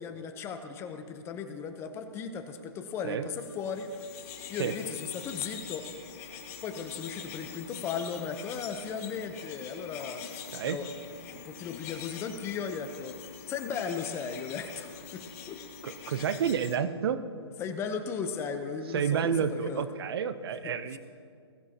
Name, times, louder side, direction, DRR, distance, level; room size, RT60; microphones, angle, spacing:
voice 1, 0.0-5.9 6.6-10.3 10.6-10.9 11.3-13.2 13.5-15.6 16.0-16.3 17.6-19.8 20.6-21.0, left 6 dB, 20° left, 7 dB, 0.8 m, -36 dB
sound 1, 3.5-16.8, left 7 dB, 35° left, 1.8 m, -44 dB
voice 2, 15.8-17.2 18.9-21.0, right 7 dB, 60° right, 12 dB, 0.8 m, -30 dB
20.5 x 13.5 x 2.9 m, 2.2 s
hypercardioid pair, 145°, 14 cm